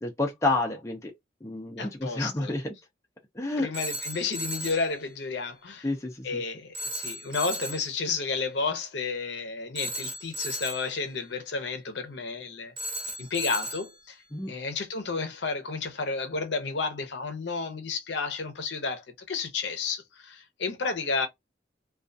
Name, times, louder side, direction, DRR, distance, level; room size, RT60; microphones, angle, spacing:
voice 1, 0.0-1.1 1.4-2.7 3.4-3.7 5.8-6.4 14.3-14.5, left 2 dB, 15° left, 0.4 m, -29 dB
voice 2, 1.8-2.5 3.6-5.9 6.2-12.7 13.2-14.2 14.5-21.3, left 4 dB, 65° left, 0.6 m, -32 dB
Telephone, 3.7-4.9 6.7-7.9 9.8-10.9 12.8-13.9, right 1 dB, 30° right, 0.6 m, -35 dB
2.3 x 2.3 x 2.6 m
head